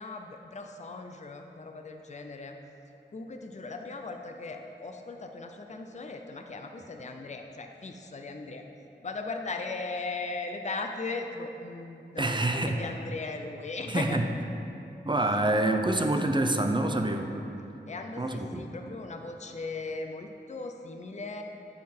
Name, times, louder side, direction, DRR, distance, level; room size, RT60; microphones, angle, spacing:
voice 1, 0.0-2.6 3.1-8.6 9.0-14.2 17.9-21.4, left 3 dB, 40° left, 4 dB, 0.5 m, -38 dB
voice 2, 12.2-12.8 13.9-14.2 15.1-17.3 18.2-18.7, right 1 dB, 25° right, 4 dB, 0.5 m, -26 dB
9.2 x 4.0 x 4.3 m, 2.7 s
wide cardioid pair, 55°, 19 cm